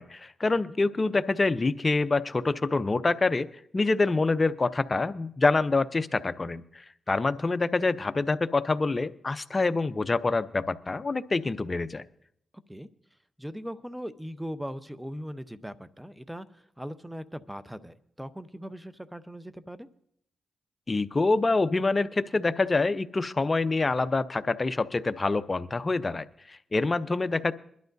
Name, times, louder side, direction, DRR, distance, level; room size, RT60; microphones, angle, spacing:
voice 1, 0.0-3.5 3.7-12.0 20.9-27.5, left 3 dB, 35° left, 13 dB, 0.6 m, -26 dB
voice 2, 13.4-19.9, equal, 5° right, 12 dB, 0.8 m, -39 dB
22.5 x 11.5 x 2.7 m, 0.70 s
cardioid pair, 55°, 0 cm